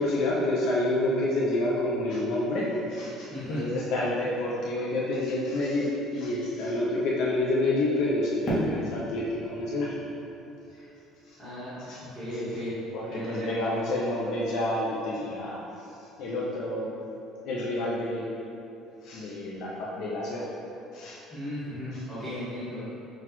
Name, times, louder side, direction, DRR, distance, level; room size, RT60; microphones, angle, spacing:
voice 1, 0.0-9.9 11.9-12.0 12.9-15.6 16.2-16.9 17.4-18.3 19.0-20.5 20.9-21.2, left 1 dB, 55° left, -5 dB, 0.5 m, -28 dB
voice 2, 3.3-3.7 11.4-11.8 12.1-12.7 13.1-13.5 21.3-22.8, left 1 dB, ahead, -16 dB, 1.2 m, -35 dB
Fireworks, 8.4-11.5, equal, 20° left, 0.9 m, -34 dB
5.9 x 2.3 x 2.9 m, 2.9 s
cardioid pair, 180°, 0 cm